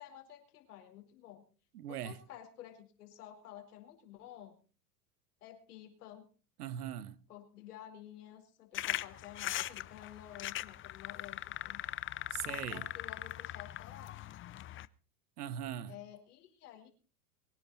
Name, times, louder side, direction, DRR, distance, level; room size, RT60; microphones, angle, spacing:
voice 1, 0.0-1.4 1.9-4.6 5.4-6.3 7.3-11.8 12.4-14.2 15.9-16.9, left 11 dB, 85° left, 4.6 m, -52 dB
voice 2, 1.7-2.2 6.6-7.2 12.3-12.9 15.4-16.0, right 10 dB, 85° right, 1.4 m, -40 dB
sound 1, 8.7-14.9, left 13 dB, 25° left, 0.6 m, -40 dB
23.5 x 11.0 x 4.2 m
hypercardioid pair, 110°, 45 cm